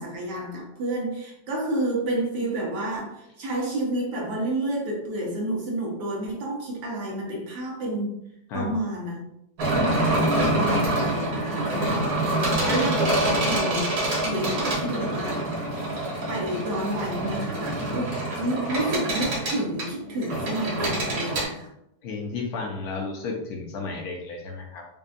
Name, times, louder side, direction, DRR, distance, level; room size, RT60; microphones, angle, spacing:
voice 1, 0.0-8.2 8.5-9.2 9.7-12.2 12.6-13.1 13.4-15.4 15.7-15.9 16.3-21.7, right 1 dB, 90° right, -2 dB, 1.7 m, -30 dB
sound 1, 9.6-21.4, right 1 dB, 70° right, 1.8 m, -26 dB
voice 2, 22.0-24.9, left 3 dB, 70° left, 1 dB, 1.2 m, -33 dB
5.2 x 2.2 x 2.5 m, 0.77 s
omnidirectional pair, 1.8 m